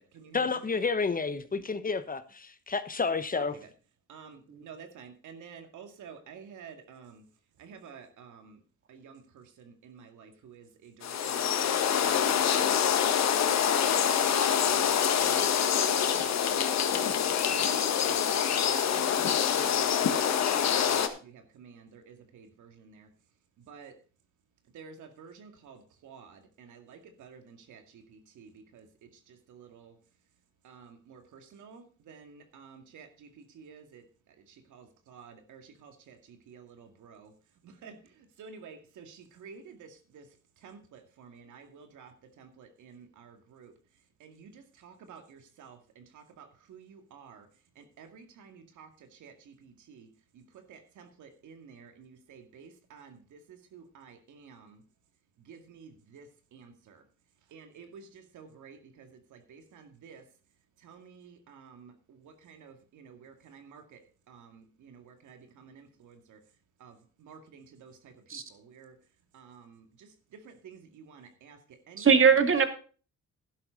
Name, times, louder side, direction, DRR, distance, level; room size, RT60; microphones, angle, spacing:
voice 1, 0.3-3.6, left 4 dB, 30° left, 1.0 m, -30 dB
voice 2, 4.1-7.2 7.6-8.6 8.9-11.7 12.0-12.4 13.5-16.6 17.6-20.2 20.5-23.1 23.7-23.9 24.7-25.8 26.0-27.8 28.4-28.8 29.5-29.9 30.6-33.1 33.6-34.0 34.7-36.2 36.5-37.3 37.8-38.0 38.4-39.9 40.1-40.2 40.6-42.1 42.4-43.7 44.2-47.4 48.0-48.9 49.2-49.3 49.6-50.1 50.7-53.2 53.7-54.8 55.5-56.2 56.5-56.9 57.5-59.1 59.5-60.2 60.8-61.9 62.2-64.0 64.3-66.4 66.8-66.9 67.2-68.1 68.7-68.9 69.3-69.8 70.5-71.6 71.9-72.1, right 6 dB, 75° right, 2.2 m, -51 dB
sound 1, 11.0-21.1, left 8 dB, 60° left, 1.6 m, -26 dB
voice 3, 72.0-72.6, right 6 dB, 45° right, 2.5 m, -21 dB
11.5 x 11.5 x 3.9 m
cardioid pair, 90°, 30 cm